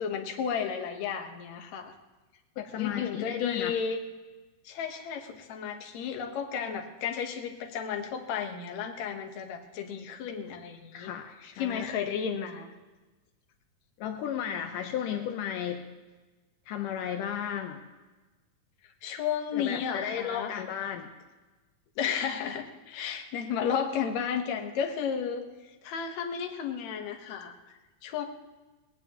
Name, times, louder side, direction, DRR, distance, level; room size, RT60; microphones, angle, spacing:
voice 1, 0.0-1.9 2.6-4.0 4.6-11.1 11.6-12.7 19.0-20.6 22.0-25.4 25.8-27.6 28.0-28.2, left 7 dB, 65° left, 4 dB, 2.3 m, -33 dB
voice 2, 2.6-3.7 10.9-11.9 14.0-15.8 16.7-17.8 19.5-21.1, left 9 dB, 80° left, 5 dB, 2.4 m, -34 dB
19.0 x 18.5 x 3.0 m, 1.2 s
omnidirectional pair, 3.7 m